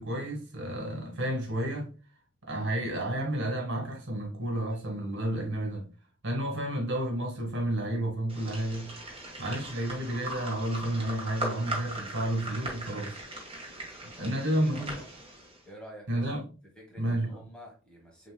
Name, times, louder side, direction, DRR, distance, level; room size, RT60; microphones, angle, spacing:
voice 1, 0.0-1.9 2.4-5.9 6.2-9.0 9.4-13.2 14.0-14.9 16.1-16.4 17.0-17.4, right 1 dB, 55° right, 1.8 m, -31 dB
sound 1, 8.3-15.6, right 1 dB, 25° right, 1.5 m, -39 dB
voice 2, 14.2-15.1 15.6-16.4 16.7-18.3, equal, 5° left, 1.3 m, -49 dB
6.9 x 2.9 x 2.2 m
head